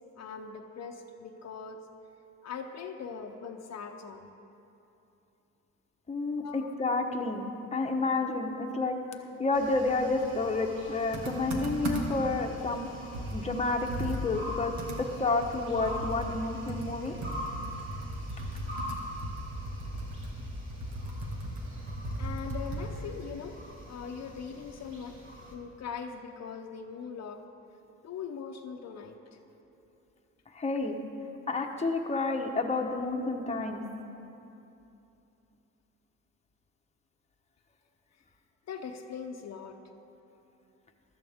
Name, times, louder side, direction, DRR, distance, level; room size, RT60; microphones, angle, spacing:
voice 1, 0.2-1.8 2.4-4.3 6.4-6.7 9.1-9.2 22.2-23.6 23.9-25.2 25.5-27.4 28.0-29.2 38.7-39.8, left 6 dB, 60° left, 4 dB, 0.8 m, -41 dB
voice 2, 6.1-7.4 7.7-9.0 9.4-12.9 13.3-17.2 30.5-31.0 31.5-33.8, left 3 dB, 20° left, 2 dB, 1.1 m, -30 dB
sound 1, 9.5-25.5, equal, 40° right, 2.8 m, -44 dB
Computer keyboard, 11.1-12.3 12.7-12.8 13.1-23.0, right 1 dB, 70° right, 1.9 m, -36 dB
14.0 x 13.0 x 3.6 m, 2.9 s
cardioid pair, 90°, 30 cm